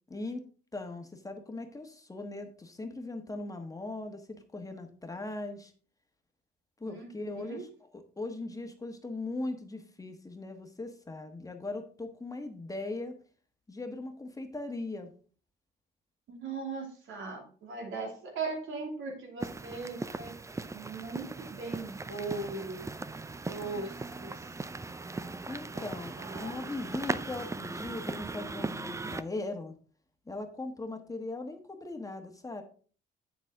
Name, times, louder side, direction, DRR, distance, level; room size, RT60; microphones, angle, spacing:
voice 1, 0.1-0.4 0.7-5.7 6.8-7.7 7.9-13.2 13.7-15.1 25.5-29.7 30.3-32.6, left 2 dB, 15° left, 5 dB, 1.3 m, -39 dB
voice 2, 6.8-7.7 16.3-20.4 20.7-23.0 23.3-24.5 25.7-25.9 26.2-26.6, right 4 dB, 80° right, 1 dB, 2.6 m, -39 dB
sound 1, 19.4-29.2, right 3 dB, 15° right, 0.4 m, -38 dB
8.0 x 6.8 x 3.6 m, 0.41 s
cardioid pair, 90°, 20 cm